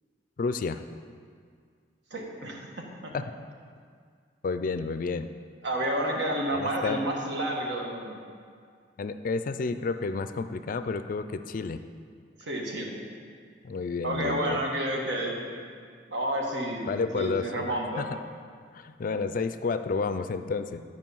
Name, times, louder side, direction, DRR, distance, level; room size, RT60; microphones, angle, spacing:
voice 1, 0.4-0.8 3.1-3.2 4.4-5.3 6.5-7.0 9.0-11.8 13.6-14.6 16.9-18.1 18.7-20.8, left 4 dB, 50° left, 10 dB, 0.4 m, -30 dB
voice 2, 2.1-2.7 3.0-3.1 5.6-8.3 12.4-13.0 14.0-15.6 16.1-18.1, right 1 dB, 70° right, 0 dB, 1.4 m, -30 dB
12.0 x 5.0 x 5.5 m, 2.1 s
head